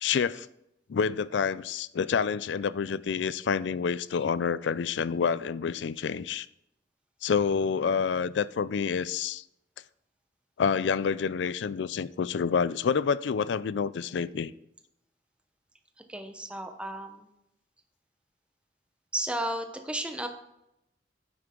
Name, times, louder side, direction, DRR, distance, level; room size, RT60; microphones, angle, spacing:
voice 1, 0.0-0.5 0.9-6.5 7.2-9.4 10.6-14.5, left 6 dB, 85° left, 0.4 m, -28 dB
voice 2, 16.0-17.3 19.1-20.3, right 1 dB, 5° right, 0.9 m, -33 dB
9.8 x 8.0 x 3.8 m
head